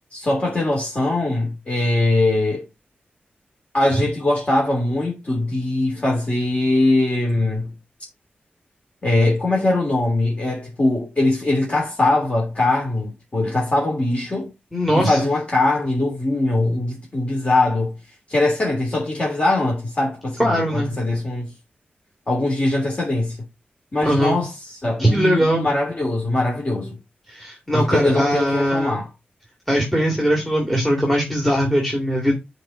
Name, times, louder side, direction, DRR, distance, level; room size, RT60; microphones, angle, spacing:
voice 1, 0.1-2.7 3.7-7.7 9.0-14.5 14.9-17.9 18.3-21.5 22.3-23.4 23.9-24.5 24.8-26.9 27.7-29.1, left 2 dB, 35° left, 2.8 m, -21 dB
voice 2, 14.7-15.3 20.4-20.9 24.0-24.4 25.0-25.7 27.3-29.0 29.7-32.3, equal, 5° left, 2.1 m, -20 dB
8.7 x 4.8 x 4.3 m
wide cardioid pair, 115°, 4 cm